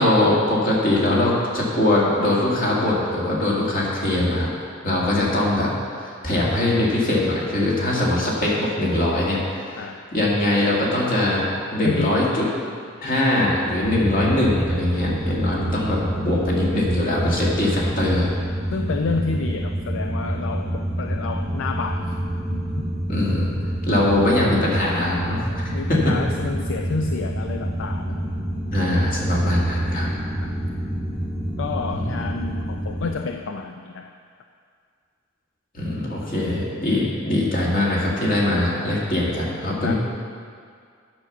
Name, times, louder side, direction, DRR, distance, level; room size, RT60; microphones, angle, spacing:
voice 1, 0.0-4.5 4.8-11.4 11.7-12.5 13.0-18.3 23.1-23.5 23.8-26.2 28.7-30.1 31.9-32.1 35.7-39.9, left 1 dB, 45° left, -4 dB, 2.0 m, -22 dB
voice 2, 5.0-5.3 9.8-10.1 11.8-12.2 13.0-13.2 18.7-22.1 22.5-22.9 25.7-28.2 30.4-30.5 31.6-34.1 39.8-39.9, left 4 dB, 65° left, 5 dB, 0.4 m, -29 dB
sound 1, 13.8-33.1, right 1 dB, 20° left, 2.3 m, -27 dB
8.7 x 5.9 x 6.7 m, 2.2 s
head